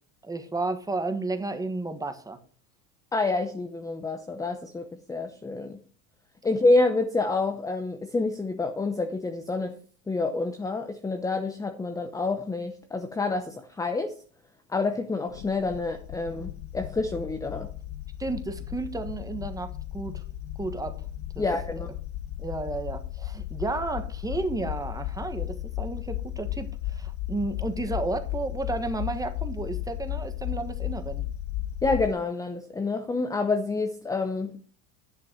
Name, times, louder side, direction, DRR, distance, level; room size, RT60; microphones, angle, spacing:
voice 1, 0.2-2.4 18.2-20.2 20.6-21.0 21.3-21.4 22.4-31.2, right 2 dB, 10° right, 8 dB, 1.3 m, -32 dB
voice 2, 3.1-5.8 6.4-9.8 10.1-14.1 14.7-17.7 21.4-21.9 31.8-34.6, left 3 dB, 10° left, 7 dB, 0.8 m, -28 dB
sound 1, 15.3-32.1, left 13 dB, 70° left, 0.8 m, -35 dB
10.5 x 5.9 x 6.2 m, 0.42 s
supercardioid pair, 135°, 39 cm